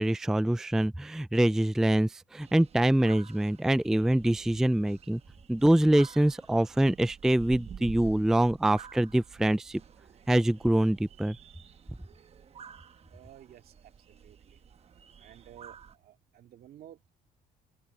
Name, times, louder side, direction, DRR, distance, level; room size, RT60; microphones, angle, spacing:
voice 1, 0.0-5.2 5.5-9.8 10.3-11.4, right 1 dB, 5° right, 0.4 m, -25 dB
sound 1, 2.4-16.0, right 7 dB, 40° right, 1.0 m, -50 dB
voice 2, 13.1-14.6 15.2-17.1, right 11 dB, 65° right, 2.3 m, -53 dB
cardioid pair, 110°, 17 cm